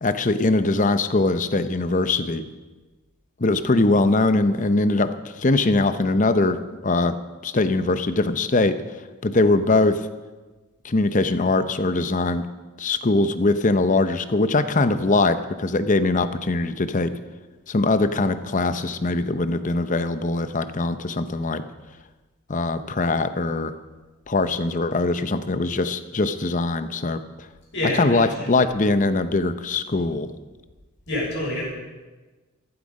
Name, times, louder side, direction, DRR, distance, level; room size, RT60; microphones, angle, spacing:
voice 1, 0.0-2.4 3.4-7.2 7.4-8.7 9.2-10.0 10.8-12.4 12.8-17.1 17.7-21.7 22.5-23.7 24.3-27.2 28.0-30.3, left 2 dB, 35° left, 11 dB, 0.7 m, -21 dB
voice 2, 27.7-28.7 31.1-31.6, left 1 dB, 55° left, -3 dB, 6.1 m, -27 dB
15.0 x 12.5 x 5.4 m, 1.2 s
head